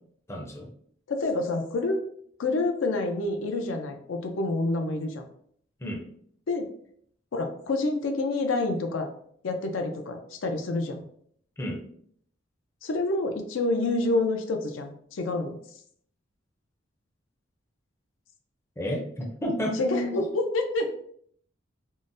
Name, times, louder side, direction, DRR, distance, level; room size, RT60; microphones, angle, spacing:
voice 1, 0.3-0.7 5.8-6.0 11.6-11.8 18.8-20.2, equal, 15° left, 0 dB, 0.5 m, -31 dB
voice 2, 1.1-2.0 2.4-5.3 6.5-6.7 7.3-9.1 9.4-11.0 12.8-15.6 19.7-20.9, left 2 dB, 85° left, 4 dB, 0.5 m, -28 dB
3.7 x 2.1 x 2.5 m, 0.63 s
head